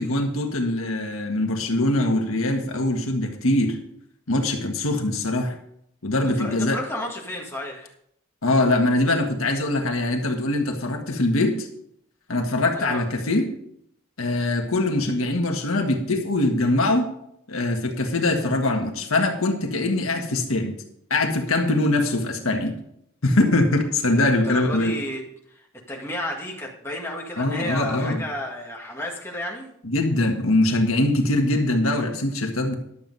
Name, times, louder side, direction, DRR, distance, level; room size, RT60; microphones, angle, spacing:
voice 1, 0.0-3.8 4.3-5.6 6.0-6.8 8.4-11.7 12.3-13.5 14.2-17.0 17.5-20.7 21.1-22.7 23.2-24.9 27.4-28.2 29.8-32.8, left 2 dB, 80° left, 3 dB, 1.6 m, -22 dB
voice 2, 6.4-7.9 12.7-13.0 24.0-25.2 25.5-25.6 25.9-29.7, left 1 dB, 10° left, -2 dB, 2.0 m, -32 dB
11.5 x 7.6 x 5.5 m, 0.72 s
head